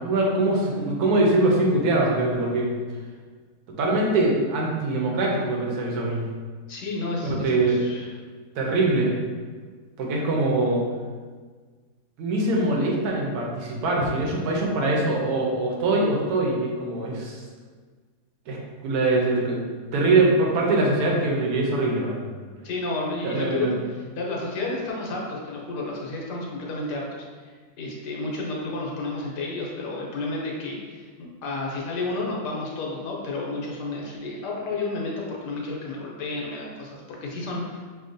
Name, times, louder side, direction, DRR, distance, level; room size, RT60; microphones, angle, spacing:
voice 1, 0.0-2.7 3.7-6.2 7.2-7.8 8.5-9.1 10.0-10.8 12.2-17.4 18.5-19.6 19.9-22.2 23.2-23.8, right 2 dB, 70° right, -2 dB, 1.2 m, -23 dB
voice 2, 6.7-8.1 14.0-14.1 22.6-37.8, left 2 dB, 80° left, -2 dB, 1.4 m, -31 dB
6.1 x 2.2 x 2.6 m, 1.5 s
omnidirectional pair, 1.8 m